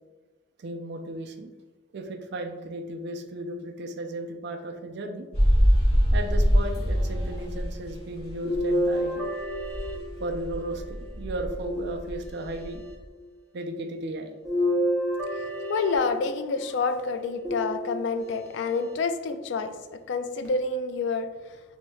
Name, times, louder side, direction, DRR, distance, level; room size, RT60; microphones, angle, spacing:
voice 1, 0.6-1.5 1.9-5.3 6.1-9.2 10.2-12.8 13.5-14.3, right 1 dB, 60° right, 6 dB, 0.5 m, -35 dB
sound 1, 5.3-9.2 9.4-12.9, equal, 35° left, 1.3 m, -24 dB
sound 2, 8.4-10.7 11.4-12.5 14.4-16.5 17.4-18.3 19.0-19.1 20.4-20.5, equal, 5° left, 1.0 m, -29 dB
voice 2, 15.7-19.7 20.1-21.3, left 4 dB, 70° left, 9 dB, 0.3 m, -28 dB
6.1 x 2.7 x 2.3 m, 1.2 s
head